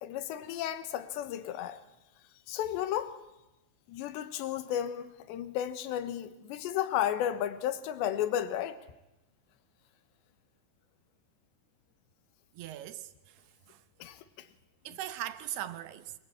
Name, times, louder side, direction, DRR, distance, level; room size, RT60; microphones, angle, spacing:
voice 1, 0.0-1.8 2.5-3.2 3.9-8.8 14.0-14.5, left 11 dB, 75° left, 3.4 m, -33 dB
voice 2, 12.5-13.8 14.8-16.1, right 13 dB, 70° right, 2.7 m, -40 dB
26.5 x 22.0 x 8.8 m
omnidirectional pair, 5.3 m